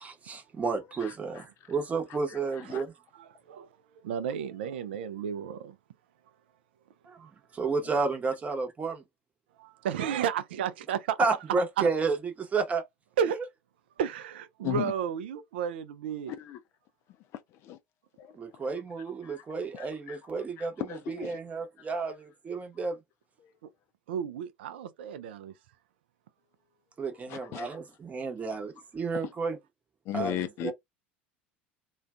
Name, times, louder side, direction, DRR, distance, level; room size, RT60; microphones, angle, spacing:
voice 1, 0.0-2.9 7.1-7.3 7.5-9.0 11.2-12.8 18.3-20.7 21.2-23.0 27.0-29.6 30.1-30.7, right 4 dB, 25° right, 0.8 m, -31 dB
voice 2, 1.0-1.4 2.3-2.8 14.6-14.9 16.3-16.6 17.6-17.8 18.2-18.3 18.6-18.7 19.2-19.4 19.7-20.2 20.6-21.4 23.4-23.5 27.1-27.7 28.5-28.6 29.1-29.3 30.1-30.7, left 13 dB, 45° left, 0.4 m, -37 dB
voice 3, 3.2-3.7 4.0-5.8 7.2-7.3 9.6-11.2 11.8-11.9 13.2-13.4 14.0-16.3 24.1-25.5, right 8 dB, 65° right, 0.4 m, -32 dB
2.4 x 2.3 x 2.3 m
figure-of-eight pair, 70°, 6 cm